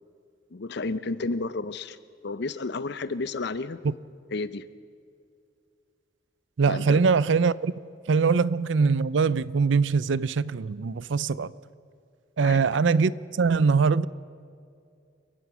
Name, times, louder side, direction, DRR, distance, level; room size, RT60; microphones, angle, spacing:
voice 1, 0.5-2.0 2.2-3.8 4.3-4.7 6.7-7.0 12.4-12.6, left 3 dB, 65° left, 0.7 m, -31 dB
voice 2, 6.6-7.7 8.1-11.5 12.4-14.1, right 5 dB, 75° right, 0.5 m, -22 dB
29.0 x 15.5 x 6.1 m
head